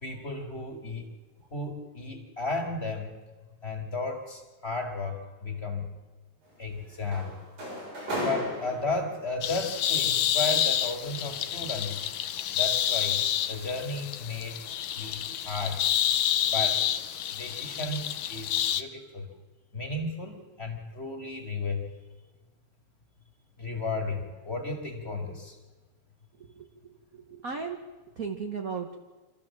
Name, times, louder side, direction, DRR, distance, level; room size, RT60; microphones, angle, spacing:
voice 1, 0.0-1.1 1.5-3.2 3.6-5.9 6.6-7.4 8.2-12.0 12.5-13.2 13.5-14.6 14.9-15.9 16.4-16.8 17.3-19.3 19.7-21.9 23.6-25.6, left 3 dB, 20° left, 3 dB, 2.4 m, -34 dB
sound 1, 6.4-9.4 10.5-12.4 12.9-13.1 13.6-13.8, equal, 85° right, 8.9 m, -37 dB
sound 2, 9.4-18.8, left 10 dB, 85° left, 1.1 m, -28 dB
voice 2, 26.4-27.8 28.2-28.9, right 5 dB, 55° right, 3 dB, 1.0 m, -36 dB
26.0 x 14.0 x 7.4 m, 1.2 s
omnidirectional pair, 3.4 m